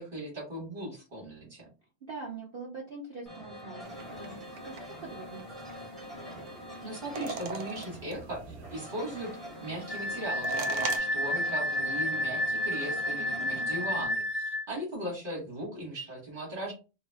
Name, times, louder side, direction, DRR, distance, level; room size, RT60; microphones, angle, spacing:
voice 1, 0.0-1.7 6.8-16.7, right 1 dB, 35° right, -2 dB, 1.2 m, -38 dB
voice 2, 2.1-5.4 13.1-13.7, right 4 dB, 60° right, -2 dB, 0.5 m, -43 dB
sound 1, 3.3-14.1, equal, ahead, 0.5 m, -44 dB
sound 2, 3.8-11.0, right 5 dB, 80° right, 1.2 m, -42 dB
Wind instrument woodwind instrument, 9.9-14.7, left 1 dB, 90° left, 0.5 m, -31 dB
2.7 x 2.2 x 3.2 m, 0.31 s
omnidirectional pair, 1.8 m